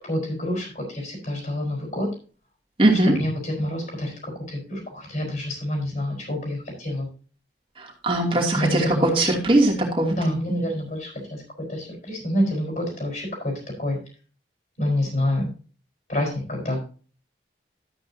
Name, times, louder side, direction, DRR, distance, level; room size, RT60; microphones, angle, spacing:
voice 1, 0.0-2.1 3.0-7.1 8.5-9.4 10.2-14.0 14.8-15.5 16.1-16.9, left 1 dB, 50° left, -1 dB, 4.5 m, -27 dB
voice 2, 2.8-3.1 7.8-10.1, right 1 dB, 30° right, -1 dB, 2.7 m, -20 dB
13.0 x 8.5 x 2.8 m, 0.38 s
head